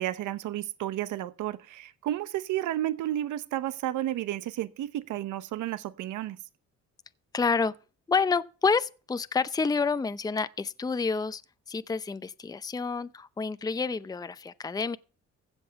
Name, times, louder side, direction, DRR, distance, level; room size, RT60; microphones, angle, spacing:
voice 1, 0.0-6.4, right 13 dB, 80° right, 0.9 m, -32 dB
voice 2, 7.3-7.7 8.1-11.4 11.7-15.0, left 4 dB, 15° left, 0.6 m, -28 dB
15.5 x 5.4 x 7.9 m
cardioid pair, 90°, 30 cm